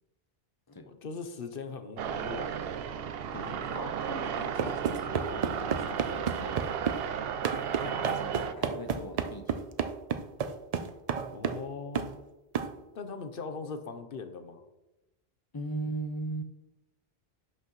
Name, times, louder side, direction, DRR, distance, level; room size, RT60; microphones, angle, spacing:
voice 1, 0.9-2.8 3.4-3.8 11.3-12.1 12.9-14.6, left 4 dB, 65° left, 8 dB, 1.0 m, -40 dB
sound 1, 2.0-8.5, right 8 dB, 75° right, 0.8 m, -34 dB
voice 2, 3.3-6.7 7.8-9.6 10.8-10.9 15.5-16.4, right 1 dB, 25° left, 7 dB, 0.6 m, -40 dB
sound 2, 4.6-7.0 7.4-11.7 11.9-12.1 12.5-12.7, right 6 dB, 45° right, 0.5 m, -31 dB
11.0 x 6.1 x 3.1 m, 0.99 s
omnidirectional pair, 1.0 m